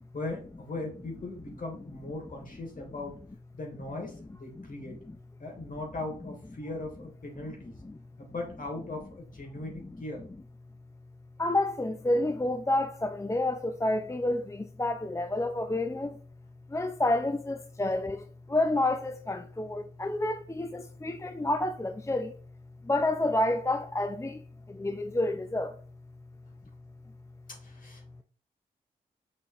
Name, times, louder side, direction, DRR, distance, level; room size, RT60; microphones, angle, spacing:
voice 1, 0.1-3.1 3.5-5.0 5.4-7.8 8.2-10.2 27.5-28.2, left 2 dB, 55° left, 3.3 m, -39 dB
voice 2, 11.4-16.2 16.7-22.3 22.9-24.4 24.7-25.7, left 1 dB, 15° left, 0.7 m, -29 dB
6.9 x 5.4 x 3.2 m
supercardioid pair, 50°, 17 cm